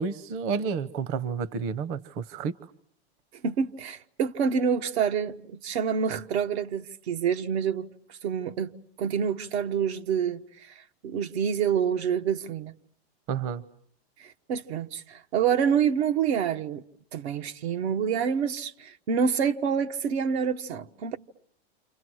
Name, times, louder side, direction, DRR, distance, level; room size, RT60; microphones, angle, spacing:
voice 1, 0.0-2.5 13.3-13.6, right 6 dB, 40° right, 1.1 m, -30 dB
voice 2, 3.4-10.4 10.7-10.8 11.0-12.7 14.2-16.8 17.1-21.2, right 7 dB, 75° right, 1.3 m, -27 dB
29.5 x 27.5 x 6.3 m
supercardioid pair, 135°, 33 cm